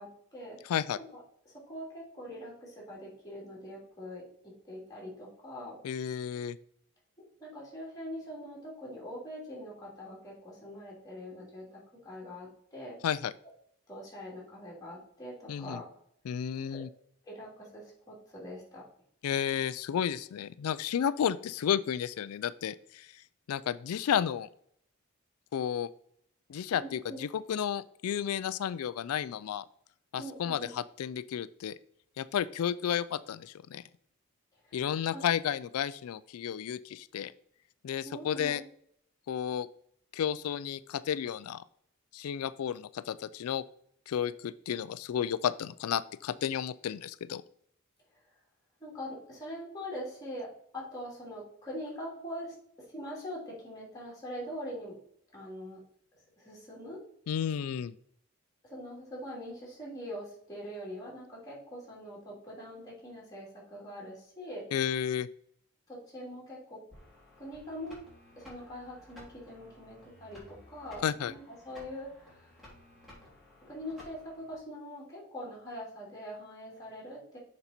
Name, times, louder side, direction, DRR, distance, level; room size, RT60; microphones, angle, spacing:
voice 1, 0.0-0.6 0.9-4.2 4.6-5.8 7.4-13.0 13.9-15.9 16.7-16.8 17.2-18.8 26.7-27.2 30.2-30.7 34.6-35.2 38.0-38.7 48.8-52.6 52.9-55.0 55.3-55.8 56.4-57.0 58.6-64.6 65.9-66.8 67.4-68.0 68.4-72.5 73.6-77.4, equal, 15° left, -5 dB, 2.9 m, -43 dB
voice 2, 0.6-1.0 5.8-6.6 13.0-13.3 15.5-15.8 16.3-16.9 19.2-23.2 23.5-24.5 25.5-25.9 26.5-29.6 30.1-31.8 32.2-33.8 34.7-37.3 37.8-38.6 39.3-39.7 40.1-41.6 42.1-43.6 44.1-47.4 57.3-58.0 64.7-65.3 71.0-71.3, left 9 dB, 75° left, 16 dB, 0.3 m, -32 dB
sound 1, 66.9-74.5, left 1 dB, ahead, 3.4 m, -55 dB
6.9 x 5.3 x 4.4 m, 0.67 s
head